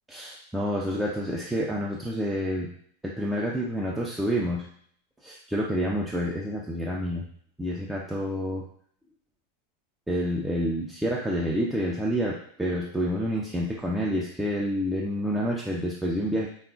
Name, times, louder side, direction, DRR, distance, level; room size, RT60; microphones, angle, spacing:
voice 1, 0.1-2.7 3.0-4.7 5.2-7.3 7.6-8.7 10.1-16.5, equal, 5° right, -4 dB, 0.4 m, -28 dB
3.4 x 2.4 x 2.3 m, 0.62 s
figure-of-eight pair, 90°, 0 cm